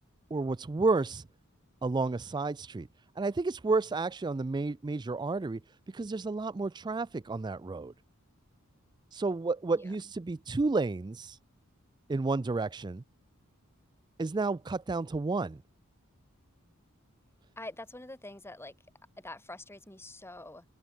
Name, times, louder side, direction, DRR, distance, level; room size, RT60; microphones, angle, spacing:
voice 1, 0.3-1.2 1.8-2.9 3.2-5.6 5.9-7.9 9.1-11.4 12.1-13.0 14.2-15.6, right 3 dB, 20° right, 0.4 m, -31 dB
voice 2, 17.6-18.7 19.2-20.6, left 2 dB, 10° left, 5.5 m, -45 dB
head